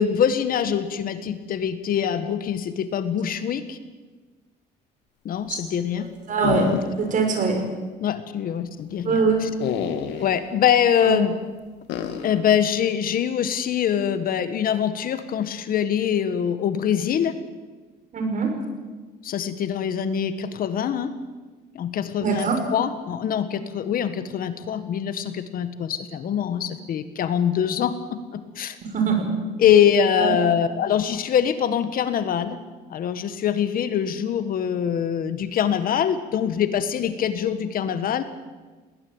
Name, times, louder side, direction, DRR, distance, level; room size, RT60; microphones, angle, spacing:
voice 1, 0.0-3.8 5.2-6.1 6.6-6.8 8.0-9.5 10.2-11.3 12.2-17.3 19.2-21.1 21.7-28.8 29.6-32.6 32.9-38.2, left 8 dB, 60° left, 11 dB, 1.7 m, -24 dB
voice 2, 6.3-6.7 7.0-7.6 9.0-9.4 11.0-11.2 18.1-18.5 22.2-22.6 28.8-29.3 30.2-30.3, right 5 dB, 50° right, 5 dB, 6.1 m, -22 dB
sound 1, 6.4-7.3 7.6-7.7 9.6-10.4 11.9-12.4, left 8 dB, 85° left, 2.3 m, -28 dB
20.0 x 19.0 x 9.0 m, 1.3 s
cardioid pair, 110°, 17 cm